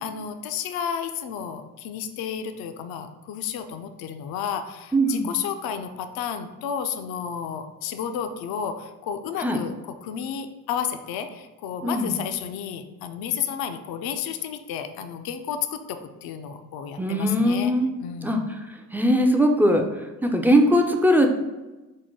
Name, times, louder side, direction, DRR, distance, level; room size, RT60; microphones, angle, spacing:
voice 1, 0.0-17.7 18.0-18.4, left 8 dB, 55° left, 8 dB, 0.5 m, -32 dB
voice 2, 4.9-5.3 9.4-9.6 11.8-12.1 17.0-17.9 18.2-18.4 18.9-19.8 20.2-21.3, equal, 5° right, 2 dB, 0.4 m, -20 dB
4.6 x 2.1 x 4.3 m, 1.1 s
supercardioid pair, 65°, 45 cm